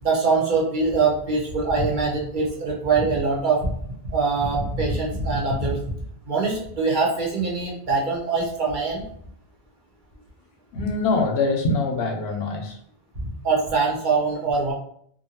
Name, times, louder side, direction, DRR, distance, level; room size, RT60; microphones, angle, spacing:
voice 1, 0.0-3.7 4.0-5.8 6.2-9.0 13.2-14.7, right 4 dB, 55° right, -2 dB, 0.9 m, -23 dB
voice 2, 10.7-12.8, left 3 dB, 80° left, 4 dB, 0.8 m, -24 dB
2.6 x 2.2 x 2.8 m, 0.64 s
omnidirectional pair, 1.1 m